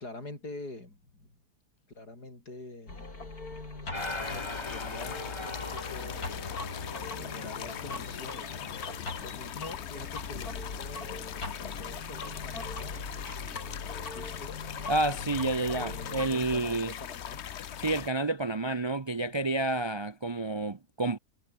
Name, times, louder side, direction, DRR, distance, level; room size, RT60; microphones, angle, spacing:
voice 1, 0.0-1.4 1.9-3.3 4.3-6.3 7.1-14.5 15.8-17.9 19.2-19.4, left 2 dB, 90° left, 7.6 m, -46 dB
sound 1, 2.9-16.6, left 3 dB, 70° left, 5.2 m, -42 dB
sound 2, 3.9-18.1, left 9 dB, 55° left, 0.9 m, -40 dB
sound 3, 3.9-9.0, left 1 dB, 15° left, 3.2 m, -41 dB
voice 2, 14.9-16.9 17.8-21.2, right 2 dB, 40° right, 0.3 m, -29 dB
omnidirectional pair, 1.7 m